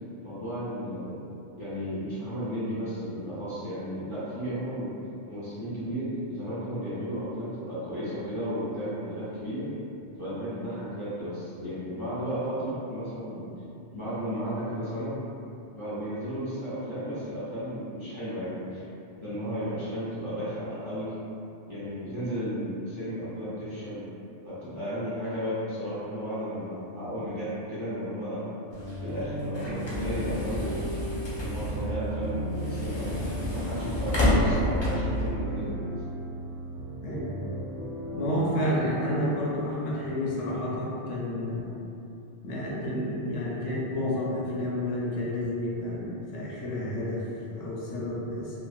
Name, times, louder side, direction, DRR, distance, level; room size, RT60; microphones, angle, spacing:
voice 1, 0.2-1.1 1.6-4.9 5.3-9.6 10.1-13.5 13.9-15.1 15.7-18.8 19.2-21.1 21.7-24.0 24.4-28.4 29.0-30.9 31.4-35.8, equal, 25° right, -13 dB, 0.9 m, -34 dB
sound 1, 28.7-35.3, left 1 dB, 35° left, 0.4 m, -29 dB
sound 2, 28.7-40.5, equal, 90° right, 1.0 m, -36 dB
voice 2, 38.2-41.7 42.4-48.6, left 1 dB, 75° left, -5 dB, 0.9 m, -30 dB
3.1 x 2.2 x 2.3 m, 2.7 s
omnidirectional pair, 1.2 m